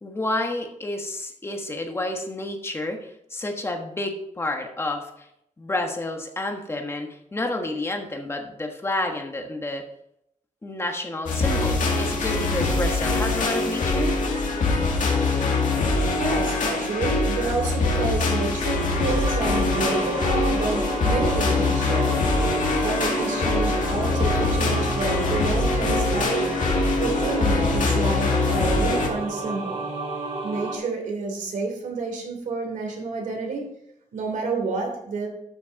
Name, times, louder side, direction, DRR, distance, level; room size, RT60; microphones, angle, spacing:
voice 1, 0.0-5.3 5.6-9.9 10.6-14.2, left 2 dB, 20° left, 4 dB, 1.3 m, -30 dB
sound 1, 11.3-29.1, left 3 dB, 80° left, 2.3 m, -23 dB
voice 2, 16.1-22.2 22.8-26.5 27.0-29.8 30.4-33.7 34.1-35.3, right 3 dB, 85° right, 1 dB, 3.1 m, -29 dB
sound 2, 18.6-30.8, right 2 dB, 50° right, 3.4 m, -31 dB
12.5 x 6.3 x 4.0 m, 0.76 s
wide cardioid pair, 170°, 13 cm